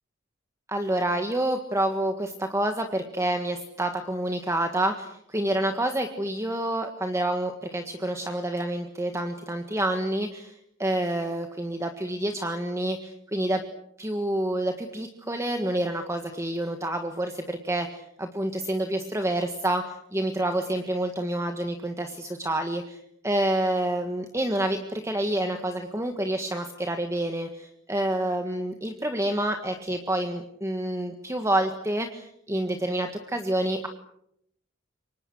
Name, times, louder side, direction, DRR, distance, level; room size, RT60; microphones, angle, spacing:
voice 1, 0.7-13.6 14.0-33.9, right 1 dB, 15° right, 6 dB, 1.7 m, -28 dB
28.5 x 25.0 x 6.3 m, 0.75 s
head